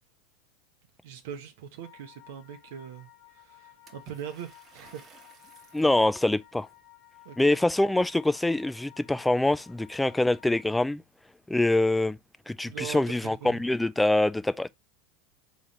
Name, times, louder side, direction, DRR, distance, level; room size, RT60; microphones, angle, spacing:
voice 1, 1.0-3.1 3.3-5.0 5.4-5.8 7.2-7.6 12.6-13.6, right 9 dB, 70° right, 0.7 m, -41 dB
sound 1, 1.8-10.7, left 15 dB, 65° left, 1.5 m, -55 dB
Water / Splash splatter, 3.9-5.9, right 6 dB, 30° right, 1.1 m, -53 dB
voice 2, 5.7-6.7 7.4-11.0 11.5-12.2 12.5-14.7, left 2 dB, 5° left, 0.3 m, -24 dB
3.7 x 3.1 x 4.1 m
hypercardioid pair, 95°, 0 cm